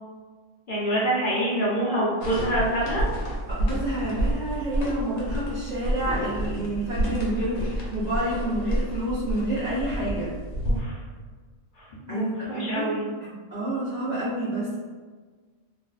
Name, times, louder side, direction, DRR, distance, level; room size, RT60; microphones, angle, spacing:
voice 1, 0.7-3.1 10.6-11.0 11.7-13.0, right 1 dB, 55° left, -7 dB, 0.6 m, -26 dB
sound 1, 2.2-10.8, equal, 80° left, 1.0 m, -29 dB
voice 2, 3.5-10.3 12.1-12.9 13.5-14.7, right 1 dB, 65° right, -8 dB, 0.4 m, -29 dB
2.5 x 2.3 x 2.3 m, 1.5 s
omnidirectional pair, 1.4 m